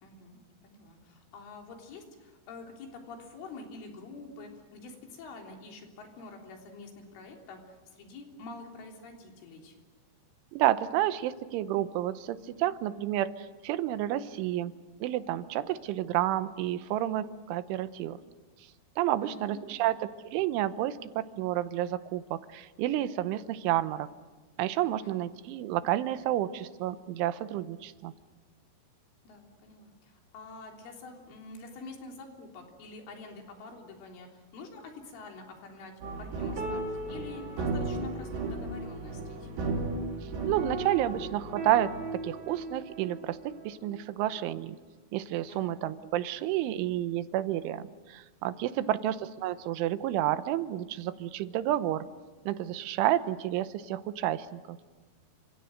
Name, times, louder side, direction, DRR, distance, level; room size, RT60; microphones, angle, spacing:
voice 1, 0.0-9.8 19.2-20.0 25.0-25.3 29.2-35.9 36.2-39.5 45.5-45.8 48.7-49.0, left 3 dB, 85° left, 2 dB, 6.0 m, -47 dB
voice 2, 10.5-14.7 15.0-18.2 19.0-24.1 24.6-28.1 40.5-41.9 42.2-43.4 43.7-44.8 45.1-52.1 52.5-54.8, right 13 dB, 85° right, 12 dB, 3.4 m, -30 dB
sound 1, 36.0-43.7 43.9-44.0, right 2 dB, 65° right, 5.6 m, -35 dB
29.5 x 26.5 x 6.5 m, 1.3 s
omnidirectional pair, 5.5 m